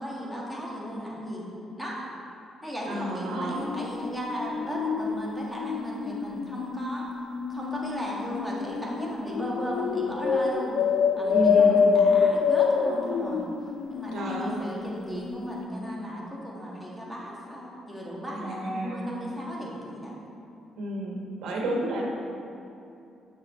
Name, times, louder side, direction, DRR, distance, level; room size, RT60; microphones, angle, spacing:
voice 1, 0.0-1.5 1.8-2.1 2.6-7.1 7.5-10.8 11.2-13.5 13.9-20.1, equal, ahead, -5 dB, 1.7 m, -35 dB
voice 2, 2.9-3.7 11.3-11.9 14.1-14.7 18.4-19.1 20.8-22.0, right 1 dB, 80° right, -1 dB, 1.2 m, -31 dB
sound 1, 3.5-15.0 15.2-15.7, left 6 dB, 80° left, 0.4 m, -26 dB
6.7 x 5.7 x 4.4 m, 2.7 s
cardioid pair, 90°, 0 cm